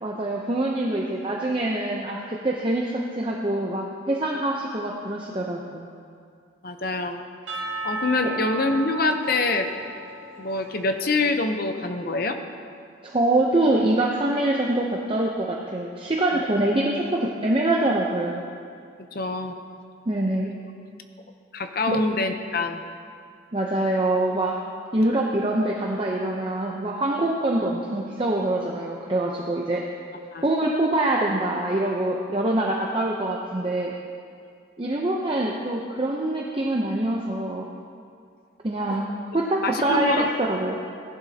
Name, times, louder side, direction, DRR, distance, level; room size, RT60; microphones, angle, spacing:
voice 1, 0.0-5.9 8.2-8.3 13.0-18.4 20.1-20.6 21.9-22.0 23.5-24.5 24.9-29.8 30.4-33.9 34.8-37.6 38.6-39.0 39.3-40.8, right 1 dB, 25° right, -2 dB, 0.7 m, -24 dB
voice 2, 6.6-7.2 7.8-9.7 10.4-12.4 16.3-16.4 19.1-19.5 21.5-22.8 30.3-30.5 39.6-40.3, left 3 dB, 50° left, 6 dB, 0.7 m, -25 dB
Percussion / Church bell, 7.5-11.6, right 2 dB, 85° right, 1.7 m, -35 dB
16.5 x 11.0 x 2.8 m, 2.3 s
head